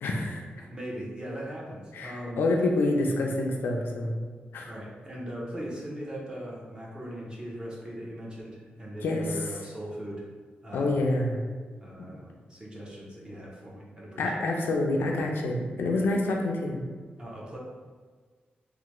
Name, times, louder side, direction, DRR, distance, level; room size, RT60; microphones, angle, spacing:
voice 1, 0.0-0.5 1.9-4.2 4.5-4.7 9.0-9.4 10.7-11.4 12.0-12.1 14.2-16.8, left 2 dB, 85° left, 1 dB, 0.4 m, -27 dB
voice 2, 0.6-2.4 4.6-10.2 10.6-11.0 11.8-14.5 17.2-17.6, right 1 dB, 25° right, -4 dB, 0.7 m, -39 dB
3.2 x 2.1 x 3.0 m, 1.5 s
wide cardioid pair, 135°, 4 cm